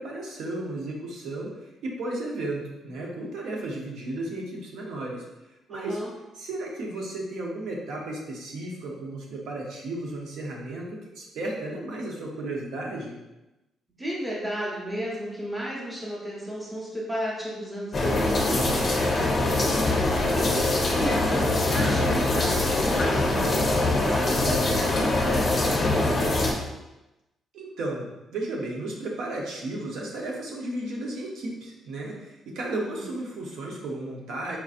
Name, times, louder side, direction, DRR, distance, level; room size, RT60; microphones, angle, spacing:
voice 1, 0.0-1.5 1.8-5.3 5.7-6.0 6.4-13.2 27.5-34.6, right 2 dB, 80° right, -1 dB, 0.8 m, -34 dB
voice 2, 5.7-6.1 14.0-19.5 19.9-26.7 32.7-33.0, equal, 5° right, -5 dB, 0.8 m, -34 dB
sound 1, 17.9-26.5, left 2 dB, 30° left, 0.5 m, -23 dB
4.5 x 2.6 x 2.5 m, 1.0 s
cardioid pair, 165°, 0 cm